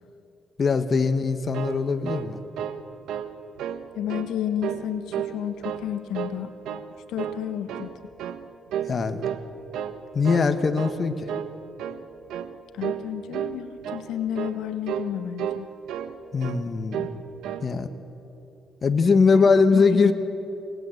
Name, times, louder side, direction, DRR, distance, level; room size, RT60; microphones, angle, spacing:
voice 1, 0.6-2.4 8.9-9.2 10.1-11.2 16.3-17.1 17.6-17.9 18.8-20.1, left 4 dB, 40° left, 8 dB, 1.5 m, -21 dB
sound 1, 1.3-2.8 3.1-3.3 3.6-4.3 4.6-5.4 5.6-6.4 6.6-6.9 7.2-7.9 8.2-8.4 8.7-9.0 9.2-10.0 10.2-10.5 10.8-11.0 11.3-11.5 11.8-12.0 12.3-12.5 12.8-13.1 13.3-13.6 13.8-14.1 14.3-14.6 14.9-15.1 15.4-16.1 16.4-16.6 16.9-17.2 17.4-17.7, right 9 dB, 85° right, 1.1 m, -32 dB
voice 2, 3.9-6.5 7.1-7.9 12.7-15.7 19.3-20.1, left 10 dB, 85° left, 9 dB, 1.3 m, -31 dB
28.0 x 19.0 x 8.0 m, 3.0 s
cardioid pair, 90°, 0 cm